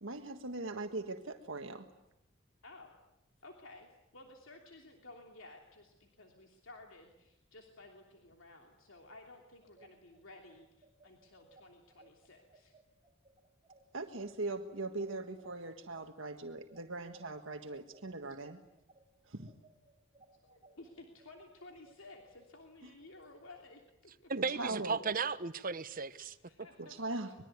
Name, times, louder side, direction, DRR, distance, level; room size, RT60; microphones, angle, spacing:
voice 1, 0.0-1.9 13.9-18.6 19.3-19.5 22.8-22.9 24.4-25.0 26.8-27.3, right 2 dB, 70° right, 1.6 m, -40 dB
voice 2, 2.6-2.9 3.4-12.7 20.4-24.3 26.2-27.0 27.3-27.4, left 2 dB, 70° left, 3.1 m, -55 dB
sound 1, 9.6-19.0 19.4-22.5, right 3 dB, 25° right, 5.7 m, -63 dB
voice 3, 24.3-26.3 26.8-26.9, right 5 dB, 45° right, 1.1 m, -35 dB
25.0 x 22.0 x 9.6 m
head